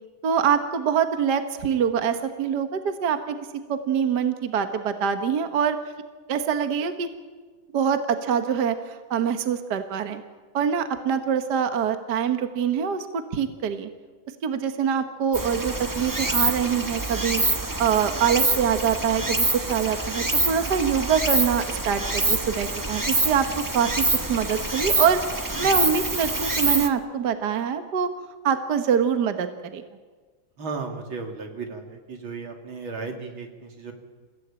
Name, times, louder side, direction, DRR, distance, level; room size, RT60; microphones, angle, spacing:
voice 1, 0.2-3.4 3.7-5.8 6.3-7.1 7.7-10.2 10.5-13.9 14.4-17.4 17.8-25.2 25.6-28.1 28.4-29.8, right 7 dB, 60° right, 8 dB, 1.7 m, -24 dB
Stream, 15.3-26.9, right 2 dB, 15° right, 0.8 m, -26 dB
voice 2, 30.6-33.9, right 4 dB, 90° right, 3 dB, 3.5 m, -35 dB
28.5 x 16.0 x 8.8 m, 1.4 s
omnidirectional pair, 2.2 m